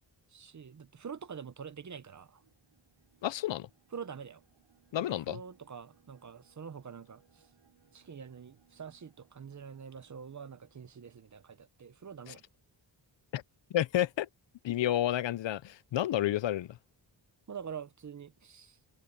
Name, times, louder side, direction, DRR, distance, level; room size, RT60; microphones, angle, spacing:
voice 1, 0.3-2.4 3.9-4.4 5.0-7.4 7.9-12.4 17.5-18.8, right 7 dB, 40° right, 0.8 m, -45 dB
sound 1, 2.2-11.4, right 9 dB, 90° right, 6.5 m, -69 dB
voice 2, 3.2-3.7 4.9-5.4 12.3-12.4 13.3-13.4 13.7-14.3 14.6-16.7, left 12 dB, 70° left, 0.6 m, -30 dB
wide cardioid pair, 160°, 46 cm